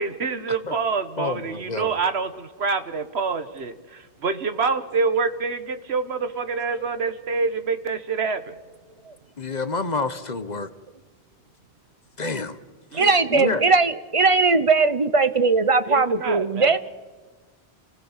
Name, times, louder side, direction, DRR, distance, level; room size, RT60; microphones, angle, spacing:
voice 1, 0.0-8.6 12.9-13.5 15.9-16.8, right 4 dB, 80° right, 11 dB, 1.5 m, -26 dB
voice 2, 1.2-1.9 9.4-10.7 12.2-12.6 12.9-13.6, left 3 dB, 45° left, 12 dB, 1.2 m, -28 dB
voice 3, 12.9-16.8, right 4 dB, 35° right, 13 dB, 0.8 m, -19 dB
29.5 x 16.5 x 7.3 m, 1.4 s
omnidirectional pair, 1.1 m